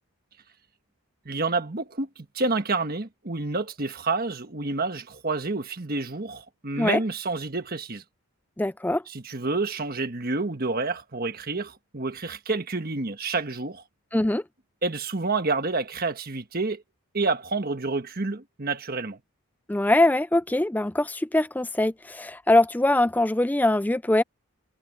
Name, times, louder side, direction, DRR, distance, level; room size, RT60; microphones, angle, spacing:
voice 1, 1.2-8.0 9.1-13.8 14.8-16.8 17.1-19.2, right 3 dB, 45° right, 1.4 m, -29 dB
voice 2, 8.6-9.0 14.1-14.4 19.7-24.2, left 1 dB, 10° left, 0.4 m, -22 dB
head